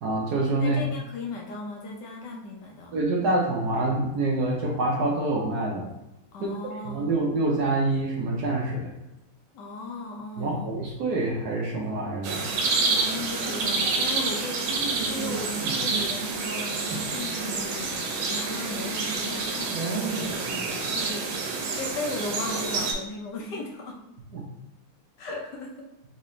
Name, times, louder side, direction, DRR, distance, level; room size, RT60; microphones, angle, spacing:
voice 1, 0.0-0.8 2.9-5.9 6.4-6.5 6.8-8.9 10.4-12.4 13.8-13.9 24.3-24.4, right 2 dB, 60° right, -1 dB, 1.2 m, -26 dB
voice 2, 0.6-2.9 6.3-7.1 9.5-10.7 12.8-24.0 25.2-25.9, left 2 dB, 70° left, 0 dB, 1.3 m, -37 dB
sound 1, 12.2-22.9, right 4 dB, 85° right, 1.6 m, -28 dB
4.1 x 3.9 x 3.1 m, 0.95 s
omnidirectional pair, 2.2 m